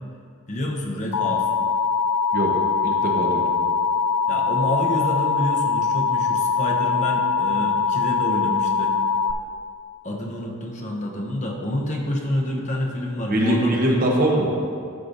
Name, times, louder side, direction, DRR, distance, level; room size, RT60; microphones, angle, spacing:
voice 1, 0.5-1.5 4.3-9.0 10.0-14.0, left 1 dB, 35° left, -1 dB, 0.8 m, -28 dB
Alarm, 1.1-9.3, left 5 dB, 75° left, 0.4 m, -22 dB
voice 2, 2.8-3.5 13.3-14.5, right 1 dB, 40° right, -1 dB, 1.1 m, -22 dB
12.5 x 6.7 x 2.6 m, 2.3 s
head